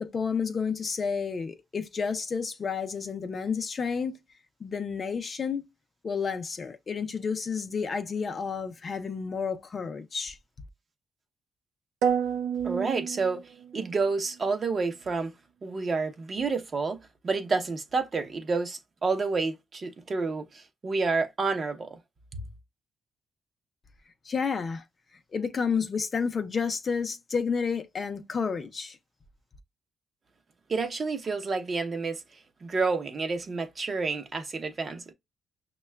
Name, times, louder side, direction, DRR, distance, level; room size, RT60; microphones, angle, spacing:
voice 1, 0.0-4.2 4.6-5.6 6.0-10.4 24.2-24.8 25.3-29.0, left 5 dB, 35° left, 0.6 m, -30 dB
sound 1, 12.0-14.0, right 8 dB, 90° right, 0.4 m, -29 dB
voice 2, 12.6-15.3 15.6-22.0 22.3-22.4 30.7-32.2 32.6-35.1, right 4 dB, 35° right, 0.7 m, -29 dB
6.2 x 2.2 x 2.2 m
cardioid pair, 130°, 0 cm